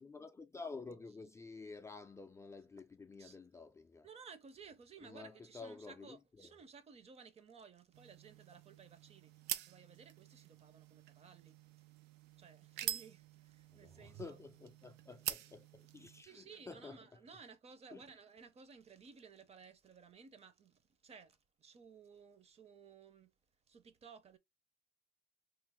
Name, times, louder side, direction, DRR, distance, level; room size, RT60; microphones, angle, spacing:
voice 1, 0.0-4.1 5.0-6.5 13.7-17.2 17.9-18.0, left 4 dB, 15° left, 0.3 m, -51 dB
voice 2, 4.0-11.6 12.4-14.4 16.2-23.3 23.7-24.4, right 6 dB, 35° right, 0.6 m, -57 dB
sound 1, 7.9-16.2, right 12 dB, 90° right, 0.4 m, -47 dB
3.1 x 2.0 x 3.5 m
cardioid pair, 110°, 17 cm